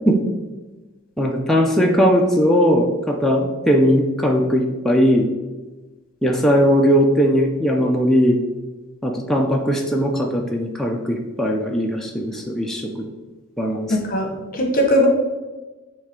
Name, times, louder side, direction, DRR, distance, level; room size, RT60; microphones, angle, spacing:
voice 1, 1.2-5.3 6.2-8.4 9.0-13.1 13.6-14.0, equal, ahead, 0 dB, 0.5 m, -19 dB
voice 2, 13.9-15.1, equal, 40° left, 2 dB, 1.1 m, -19 dB
8.6 x 3.2 x 3.7 m, 1.2 s
head